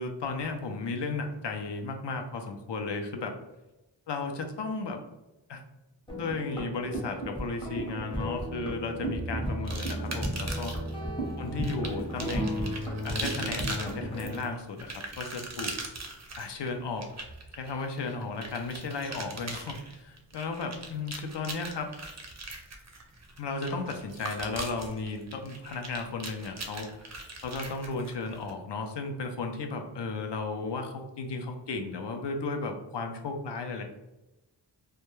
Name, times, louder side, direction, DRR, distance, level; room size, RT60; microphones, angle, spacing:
voice 1, 0.0-3.3 4.1-5.0 5.5-5.6 6.2-10.7 11.4-15.7 16.4-17.1 17.6-21.9 23.4-26.9 27.4-33.8, left 3 dB, 70° left, 4 dB, 0.5 m, -34 dB
sound 1, 6.1-14.4, right 1 dB, 10° left, 0.6 m, -34 dB
sound 2, 9.7-10.9 11.6-28.5, right 3 dB, 40° right, 0.4 m, -40 dB
2.2 x 2.2 x 3.0 m, 1.0 s
wide cardioid pair, 60°, 45 cm